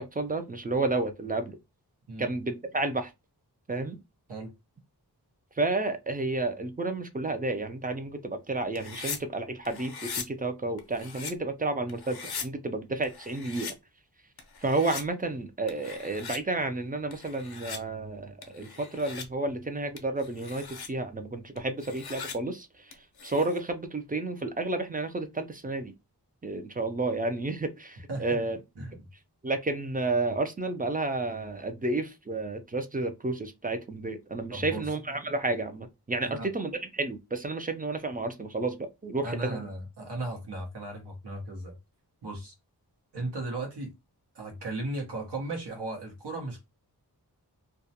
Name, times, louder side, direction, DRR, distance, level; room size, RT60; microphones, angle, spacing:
voice 1, 0.0-1.6 2.2-3.1 3.7-4.0 5.6-13.7 14.6-25.9 26.4-28.6 29.4-39.7, right 2 dB, 25° right, 0.3 m, -31 dB
sound 1, 8.8-9.2 9.7-10.3 10.8-11.3 11.9-12.5 13.0-13.7 14.4-15.0 15.7-16.4 17.1-17.8 18.4-19.3 20.0-20.9 21.6-22.3 22.9-23.6, left 5 dB, 65° left, 0.6 m, -40 dB
voice 2, 34.5-34.8 36.2-36.5 39.2-41.7 42.2-42.5 43.1-43.9 44.3-46.6, right 2 dB, 85° right, 0.9 m, -36 dB
2.3 x 2.1 x 2.7 m
wide cardioid pair, 70°, 40 cm